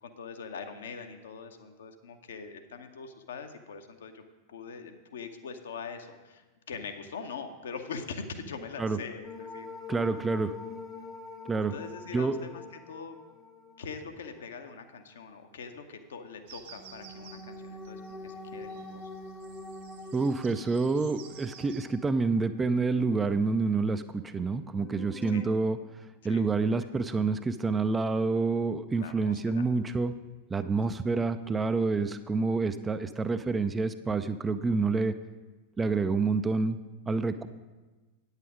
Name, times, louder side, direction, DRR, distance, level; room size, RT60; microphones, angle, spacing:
voice 1, 0.0-4.2 4.5-9.7 11.7-13.2 13.8-19.0 25.3-25.5 26.2-26.7 29.0-29.6, left 5 dB, 65° left, 7 dB, 0.8 m, -42 dB
sound 1, 9.2-14.4 16.7-22.8 23.1-23.2 24.6-25.6, left 3 dB, 15° left, 0.7 m, -45 dB
voice 2, 9.9-10.5 11.5-11.8 12.1-12.4 20.1-25.8 26.2-30.1 30.5-35.1 35.8-36.8 37.1-37.5, right 4 dB, 15° right, 10 dB, 0.4 m, -28 dB
sound 2, 16.5-21.9, right 8 dB, 55° right, 1.4 m, -53 dB
9.0 x 8.2 x 4.9 m, 1.2 s
figure-of-eight pair, 90°, 0 cm